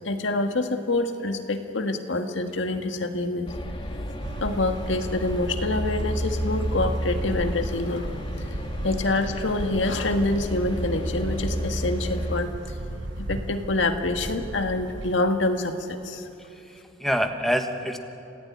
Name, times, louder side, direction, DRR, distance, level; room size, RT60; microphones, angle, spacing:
voice 1, 0.0-3.5 4.4-8.2 8.8-12.5 13.2-16.3, left 2 dB, 80° left, 6 dB, 1.6 m, -26 dB
sound 1, 3.5-12.4, equal, 25° left, 1.7 m, -31 dB
sound 2, 4.2-15.1, right 1 dB, 75° right, 1.1 m, -36 dB
voice 2, 16.4-18.0, equal, ahead, 5 dB, 1.4 m, -27 dB
26.5 x 16.0 x 9.7 m, 2.9 s
head